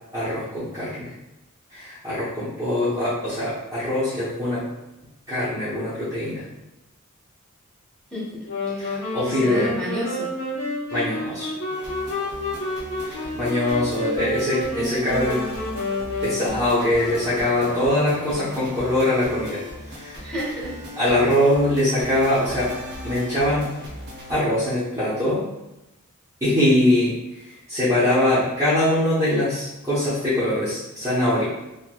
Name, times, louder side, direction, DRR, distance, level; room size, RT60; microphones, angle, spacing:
voice 1, 0.1-1.1 1.7-4.6 5.3-6.4 8.8-9.7 10.9-11.5 13.0-15.4 16.2-19.6 19.9-20.2 21.0-22.7 23.0-23.7 24.3-25.4 26.4-27.1 27.5-31.4, left 1 dB, 15° right, -13 dB, 0.8 m, -22 dB
voice 2, 8.1-8.9 9.3-10.3 20.2-20.8, equal, 5° left, -8 dB, 1.2 m, -31 dB
sound 1, 8.4-16.9, left 1 dB, 70° left, 0.9 m, -29 dB
sound 2, 11.7-24.4, left 1 dB, 55° right, 0.7 m, -38 dB
3.0 x 2.7 x 2.2 m, 0.97 s
head